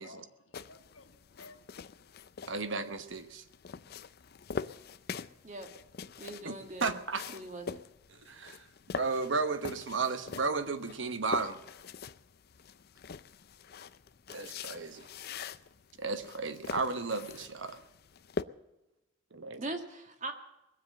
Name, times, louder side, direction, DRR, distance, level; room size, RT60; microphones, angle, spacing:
voice 1, 0.0-2.1, left 3 dB, 75° left, 1.4 m, -56 dB
sound 1, 0.5-18.4, left 5 dB, 50° left, 0.5 m, -44 dB
voice 2, 2.5-3.4 6.4-6.5 6.8-7.3 8.3-8.7 8.9-11.6 14.3-15.0 16.0-17.8 19.3-19.6, right 4 dB, 60° right, 1.0 m, -34 dB
voice 3, 6.2-7.0 7.3-7.8 19.6-20.3, right 2 dB, 35° right, 1.8 m, -40 dB
21.0 x 7.7 x 7.6 m
head